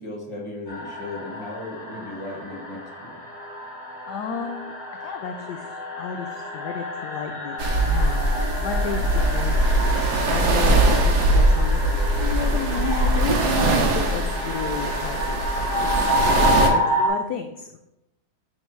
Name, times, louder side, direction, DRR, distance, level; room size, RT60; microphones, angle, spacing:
voice 1, 0.0-3.1, left 2 dB, 15° left, -2 dB, 1.4 m, -36 dB
sound 1, 0.7-17.1, left 1 dB, 35° left, 1.6 m, -29 dB
voice 2, 4.1-4.7 5.0-9.6 10.2-17.8, left 7 dB, 75° left, 5 dB, 1.0 m, -33 dB
sound 2, 7.6-16.7, right 2 dB, 60° right, 1.3 m, -21 dB
9.9 x 3.5 x 3.1 m, 0.89 s
omnidirectional pair, 2.1 m